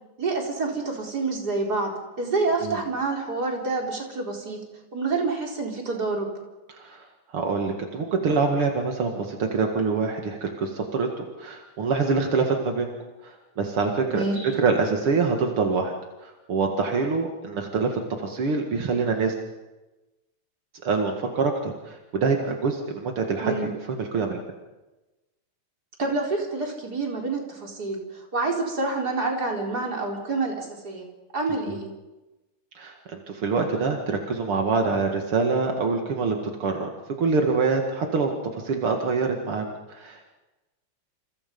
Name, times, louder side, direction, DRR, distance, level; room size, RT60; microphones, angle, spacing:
voice 1, 0.2-4.6 4.9-6.3 14.1-14.5 23.4-23.7 26.0-31.1 31.3-31.9, right 3 dB, 45° right, 0 dB, 4.7 m, -27 dB
voice 2, 7.3-12.9 13.2-15.9 16.2-19.3 20.8-23.5 24.1-24.4 31.7-31.8 32.8-36.9 37.2-38.3 38.6-40.2, right 4 dB, 80° right, 2 dB, 3.0 m, -25 dB
29.0 x 28.0 x 5.5 m, 1.1 s
omnidirectional pair, 2.4 m